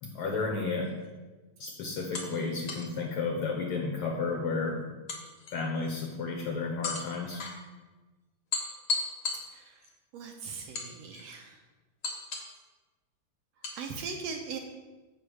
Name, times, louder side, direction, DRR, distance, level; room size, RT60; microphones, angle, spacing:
voice 1, 0.0-1.0 1.6-4.8 5.5-7.4, left 4 dB, 70° left, 1 dB, 1.4 m, -32 dB
sound 1, 0.8-1.1 2.1-3.0 5.1-5.9 6.8-7.6 8.5-9.9 10.7-11.4 12.0-12.6 13.6-13.8, left 3 dB, 45° left, 1.4 m, -36 dB
voice 2, 9.5-9.9 10.1-11.6 13.7-14.6, right 5 dB, 75° right, 3 dB, 1.7 m, -39 dB
7.5 x 4.9 x 6.2 m, 1.2 s
omnidirectional pair, 3.4 m